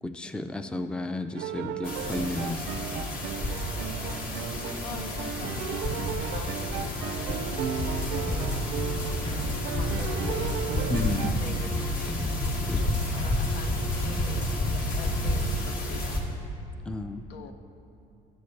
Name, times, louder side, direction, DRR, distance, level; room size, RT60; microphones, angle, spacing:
voice 1, 0.0-2.8 10.9-11.4 12.6-12.9 16.9-17.3, left 2 dB, 5° left, 9 dB, 0.4 m, -33 dB
sound 1, 1.3-11.3, right 9 dB, 90° right, 0.6 m, -35 dB
sound 2, 1.8-16.2, left 1 dB, 60° left, 1.7 m, -32 dB
voice 2, 4.8-8.5 9.3-10.7 11.2-12.2 12.7-16.3 17.3-17.5, left 5 dB, 85° left, 7 dB, 0.9 m, -44 dB
sound 3, 7.8-15.6, left 1 dB, 45° left, 2.7 m, -32 dB
20.0 x 7.9 x 3.3 m, 2.9 s
cardioid pair, 110°, 17 cm